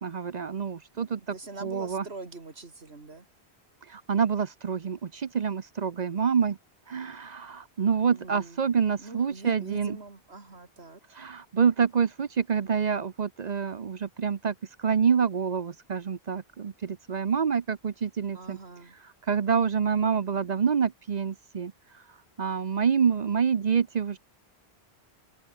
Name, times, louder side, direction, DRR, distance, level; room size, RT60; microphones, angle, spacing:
voice 1, 0.0-1.2 1.6-2.0 3.9-6.6 6.9-10.0 11.2-14.5 14.8-18.6 19.3-21.7 22.4-24.2, right 6 dB, 45° right, 0.7 m, -27 dB
voice 2, 0.9-3.3 8.0-8.6 9.0-11.0 18.3-19.0, right 3 dB, 75° right, 3.0 m, -43 dB
omnidirectional pair, 1.1 m